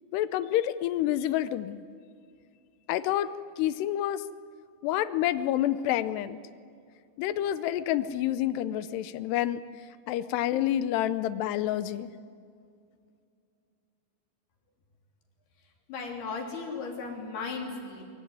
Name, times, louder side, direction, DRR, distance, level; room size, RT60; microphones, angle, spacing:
voice 1, 0.1-1.8 2.9-4.2 4.8-6.4 7.2-9.6 10.1-12.1, left 12 dB, 80° left, 14 dB, 2.6 m, -28 dB
voice 2, 15.9-18.0, left 4 dB, 60° left, 2 dB, 5.1 m, -36 dB
23.0 x 23.0 x 9.5 m, 2.3 s
omnidirectional pair, 5.2 m